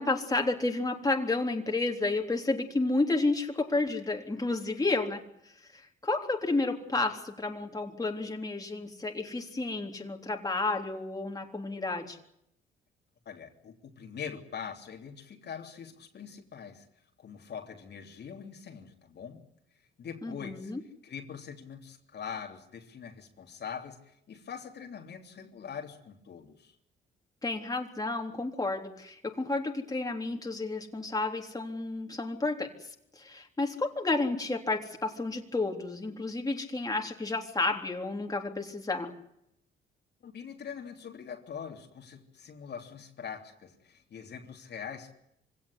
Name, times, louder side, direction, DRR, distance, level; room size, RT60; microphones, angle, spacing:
voice 1, 0.0-5.2 6.0-12.2 20.2-20.8 27.4-32.7 33.2-39.1, left 2 dB, 20° left, 2 dB, 3.6 m, -31 dB
voice 2, 13.2-16.9 17.2-19.4 20.0-20.7 21.0-26.7 40.2-45.2, left 7 dB, 55° left, 2 dB, 3.4 m, -43 dB
24.5 x 17.5 x 9.9 m, 0.78 s
cardioid pair, 90°, 20 cm